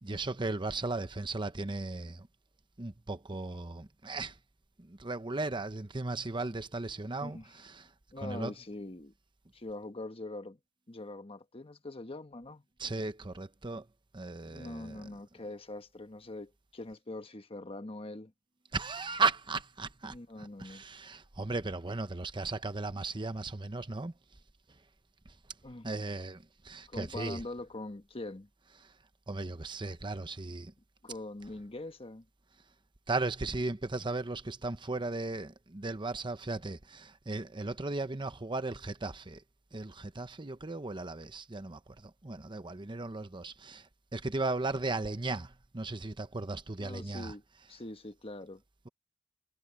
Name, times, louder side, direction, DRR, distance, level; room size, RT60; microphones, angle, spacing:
voice 1, 0.0-2.3 2.8-4.3 4.8-7.9 8.2-8.5 12.8-13.8 14.1-15.0 18.7-24.1 25.8-27.4 29.3-30.7 33.1-39.4 39.7-43.9 44.1-47.3, right 3 dB, 25° right, 0.8 m, -36 dB
voice 2, 7.2-7.6 8.1-9.1 9.5-10.6 10.9-12.6 14.5-18.3 20.1-20.8 25.6-25.9 26.9-28.5 31.0-32.3 46.8-47.4 47.7-48.6, left 2 dB, 30° left, 1.2 m, -43 dB
head